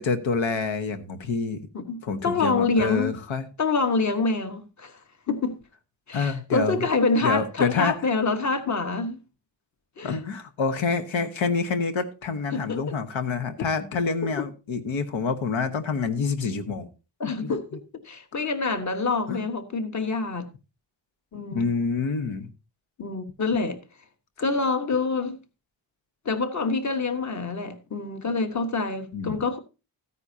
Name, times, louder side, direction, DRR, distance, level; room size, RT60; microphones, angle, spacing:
voice 1, 0.0-1.6 2.0-3.5 6.1-6.9 7.2-8.0 10.0-16.9 17.2-17.5 19.3-19.4 21.5-22.5 29.1-29.4, left 5 dB, 90° left, 1.3 m, -27 dB
voice 2, 1.7-3.1 3.6-5.0 5.3-5.6 6.1-9.2 10.0-10.2 12.5-12.8 17.2-20.5 21.3-21.7 23.0-23.8 24.4-25.4 26.2-29.6, left 3 dB, 40° left, 1.3 m, -26 dB
14.0 x 9.7 x 2.8 m
wide cardioid pair, 120°, 45 cm